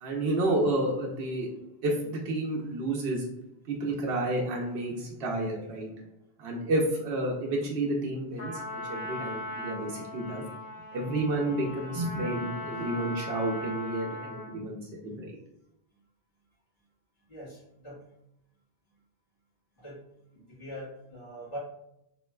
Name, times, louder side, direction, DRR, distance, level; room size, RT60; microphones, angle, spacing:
voice 1, 0.0-1.5 1.8-3.3 3.7-5.9 6.4-10.4 10.9-15.4, right 1 dB, 70° right, -2 dB, 0.8 m, -30 dB
Trumpet, 8.4-14.6, left 2 dB, 70° left, 1.2 m, -39 dB
voice 2, 17.3-18.0 19.8-20.0 20.3-21.6, equal, 45° left, -9 dB, 1.7 m, -43 dB
3.0 x 2.9 x 2.2 m, 0.81 s
omnidirectional pair, 1.1 m